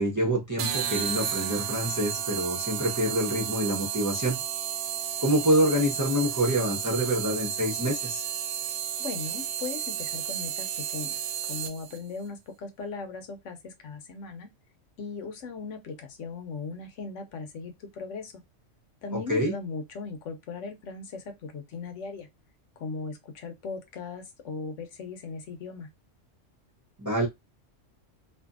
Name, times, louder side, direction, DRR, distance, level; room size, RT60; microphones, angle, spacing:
voice 1, 0.0-4.4 5.2-8.2 19.1-19.5 27.0-27.3, right 1 dB, 20° right, 0.6 m, -26 dB
sound 1, 0.6-12.0, right 9 dB, 70° right, 0.8 m, -32 dB
voice 2, 9.0-14.5 15.0-18.3 19.0-22.3 22.8-25.9, left 4 dB, 70° left, 1.1 m, -38 dB
2.6 x 2.6 x 2.3 m
omnidirectional pair, 1.3 m